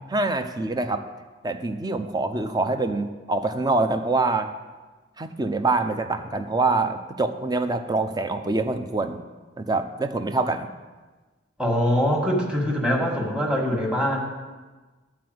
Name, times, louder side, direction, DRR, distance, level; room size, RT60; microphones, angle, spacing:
voice 1, 0.1-1.0 1.4-4.5 5.2-9.2 9.6-10.7, right 3 dB, 20° right, 8 dB, 0.6 m, -25 dB
voice 2, 11.6-14.2, equal, 5° right, -1 dB, 1.6 m, -23 dB
11.5 x 4.6 x 7.8 m, 1.3 s
head